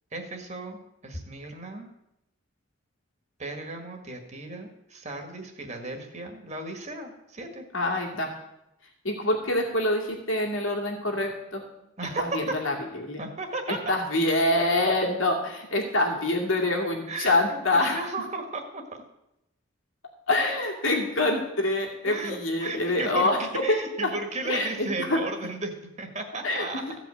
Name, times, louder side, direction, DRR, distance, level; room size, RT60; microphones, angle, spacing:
voice 1, 0.1-0.8 1.0-1.9 3.4-7.6 12.0-12.5 13.2-13.8 17.1-18.8 22.0-26.8, right 2 dB, 35° right, 4 dB, 1.7 m, -35 dB
voice 2, 7.7-8.3 9.0-11.6 12.2-13.2 13.7-18.1 20.3-24.1 24.4-25.2 26.4-27.0, left 2 dB, 85° left, 1 dB, 2.4 m, -26 dB
15.5 x 5.3 x 8.5 m, 0.87 s
head